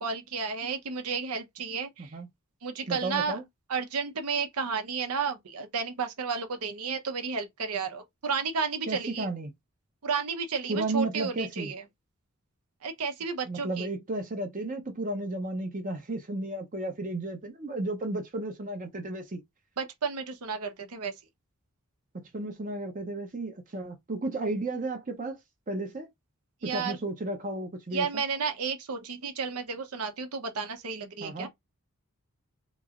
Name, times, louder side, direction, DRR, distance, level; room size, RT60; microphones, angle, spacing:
voice 1, 0.0-2.1 2.6-3.4 3.7-9.3 10.0-11.8 12.8-13.9 19.8-21.1 26.6-27.0 27.9-31.5, right 5 dB, 80° right, 0.8 m, -32 dB
voice 2, 2.9-3.4 8.9-9.5 10.7-11.7 13.5-19.4 22.1-25.4 25.7-26.1 26.6-28.1 31.2-31.5, right 2 dB, 35° right, 0.6 m, -33 dB
3.0 x 2.8 x 2.4 m
head